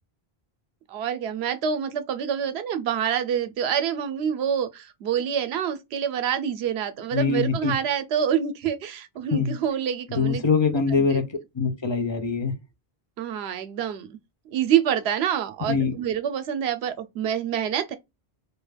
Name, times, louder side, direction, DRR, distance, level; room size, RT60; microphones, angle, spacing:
voice 1, 0.9-10.4 11.0-11.2 13.2-14.2 14.5-18.0, right 8 dB, 85° right, 0.8 m, -26 dB
voice 2, 7.1-7.7 9.3-9.5 10.1-11.2 11.6-12.5 15.7-15.9, left 5 dB, 35° left, 0.5 m, -23 dB
2.5 x 2.2 x 3.2 m
omnidirectional pair, 1.1 m